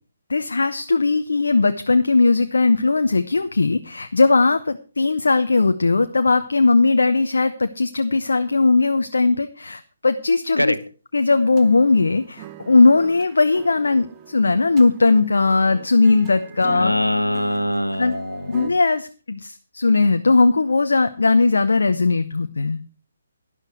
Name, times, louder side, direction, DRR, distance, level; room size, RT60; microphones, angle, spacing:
voice 1, 0.3-10.7 11.1-16.9 18.0-18.2 18.5-22.8, left 3 dB, 65° left, 0.8 m, -18 dB
sound 1, 11.3-18.7, right 8 dB, 20° right, 1.0 m, -42 dB
voice 2, 16.6-18.7, left 1 dB, 90° left, 1.0 m, -23 dB
12.5 x 11.0 x 4.6 m
figure-of-eight pair, 140°, 0 cm